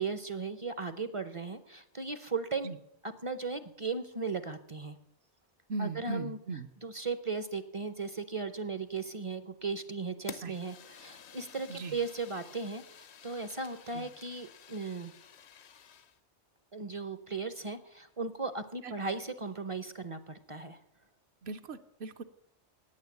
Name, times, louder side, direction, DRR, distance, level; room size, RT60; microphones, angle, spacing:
voice 1, 0.0-2.7 3.2-5.0 5.8-6.4 6.8-12.8 13.2-15.1 16.7-20.8, right 4 dB, 35° right, 12 dB, 0.6 m, -36 dB
voice 2, 5.7-6.7 10.4-10.6 11.7-12.0 13.9-14.1 18.8-18.9 21.4-22.2, right 4 dB, 65° right, 8 dB, 1.0 m, -38 dB
Fire, 10.3-16.2, left 7 dB, 70° left, 1.0 m, -52 dB
9.6 x 9.1 x 8.2 m, 0.73 s
omnidirectional pair, 1.2 m